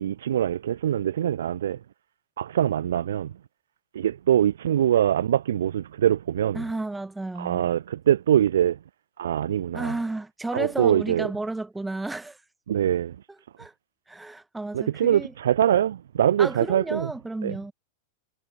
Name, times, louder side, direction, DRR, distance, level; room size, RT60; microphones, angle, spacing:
voice 1, 0.0-1.8 2.4-3.3 3.9-6.6 7.4-8.8 9.2-9.9 10.5-11.3 12.7-13.2 14.7-17.1 17.4-17.5, right 10 dB, 60° right, 0.4 m, -23 dB
voice 2, 6.5-7.7 9.7-12.4 13.6-13.7 14.1-15.3 16.4-17.7, right 2 dB, 5° right, 1.6 m, -32 dB
figure-of-eight pair, 90°, 0 cm